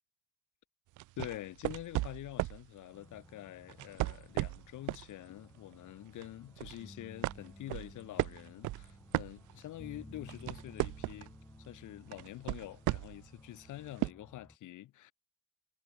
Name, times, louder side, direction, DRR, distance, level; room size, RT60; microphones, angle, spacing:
sound 1, 1.0-2.7 3.7-5.1 5.5-5.7 6.2-6.8 7.2-9.8 10.2-11.4 12.1-13.3 14.0-14.1, right 20 dB, 85° right, 0.5 m, -35 dB
voice 1, 1.2-11.4 11.7-15.1, left 14 dB, 80° left, 1.5 m, -46 dB
sound 2, 2.9-14.6, left 1 dB, 10° left, 3.5 m, -56 dB
cardioid pair, 90°, 30 cm